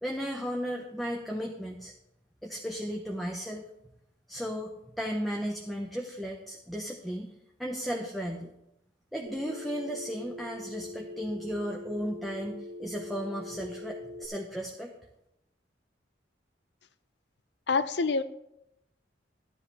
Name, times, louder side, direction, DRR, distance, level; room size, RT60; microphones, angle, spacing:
voice 1, 0.0-1.9 2.4-3.6 4.3-7.3 7.6-8.5 9.1-14.9, equal, ahead, 1 dB, 0.8 m, -35 dB
Telephone, 9.3-14.3, left 1 dB, 80° right, 1.4 m, -43 dB
voice 2, 17.7-18.2, left 4 dB, 65° left, 14 dB, 0.6 m, -26 dB
12.5 x 10.0 x 3.4 m, 0.82 s
head